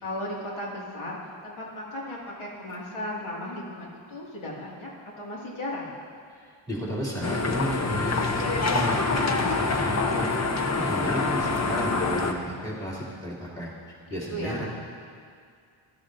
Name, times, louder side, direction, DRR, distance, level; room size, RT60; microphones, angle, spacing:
voice 1, 0.0-4.9 5.2-5.9 14.1-14.7, left 1 dB, 80° left, -4 dB, 2.3 m, -35 dB
voice 2, 6.4-10.3 10.6-13.7 14.1-14.7, equal, 10° left, -6 dB, 2.9 m, -33 dB
sound 1, 7.2-12.3, left 3 dB, 35° left, 0.8 m, -26 dB
16.0 x 12.0 x 2.6 m, 2.1 s
wide cardioid pair, 110°, 49 cm